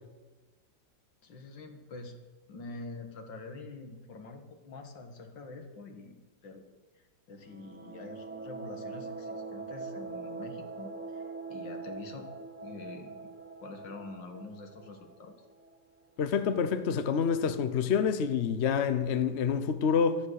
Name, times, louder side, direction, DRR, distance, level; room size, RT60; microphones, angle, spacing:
voice 1, 1.2-2.2 2.5-6.6 6.9-12.3 12.6-13.3 13.6-15.4, left 3 dB, 75° left, 2.4 m, -46 dB
sound 1, 7.4-16.0, right 4 dB, 20° right, 0.3 m, -43 dB
voice 2, 16.2-20.2, left 6 dB, 50° left, 0.9 m, -27 dB
13.0 x 12.5 x 6.6 m
omnidirectional pair, 2.0 m